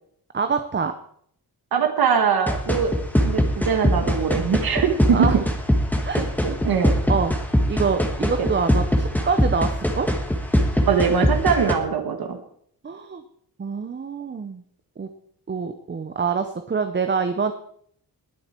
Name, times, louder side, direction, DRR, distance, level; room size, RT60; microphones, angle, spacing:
voice 1, 0.3-0.9 5.1-5.4 6.0-6.2 7.1-7.3 7.7-10.1 12.8-13.2 13.6-14.6 15.0-15.1 15.5-17.5, right 5 dB, 30° right, 8 dB, 0.8 m, -25 dB
voice 2, 1.7-2.9 3.2-5.4 6.4-6.9 8.4-8.5 10.9-12.4, right 6 dB, 70° right, 5 dB, 1.6 m, -22 dB
sound 1, 2.5-11.7, equal, 5° left, 1.6 m, -22 dB
20.0 x 7.8 x 4.5 m, 0.64 s
wide cardioid pair, 165°, 38 cm